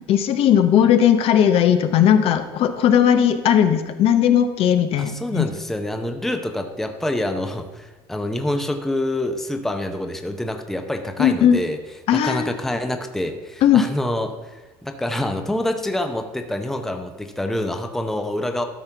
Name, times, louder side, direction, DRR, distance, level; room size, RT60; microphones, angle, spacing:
voice 1, 0.1-5.5 11.2-11.6 12.1-12.5 13.6-13.8, left 9 dB, 50° left, 9 dB, 0.8 m, -17 dB
voice 2, 5.0-11.8 12.1-18.6, left 1 dB, 5° left, 6 dB, 0.7 m, -26 dB
12.5 x 4.3 x 5.9 m, 1.2 s
supercardioid pair, 120°, 13 cm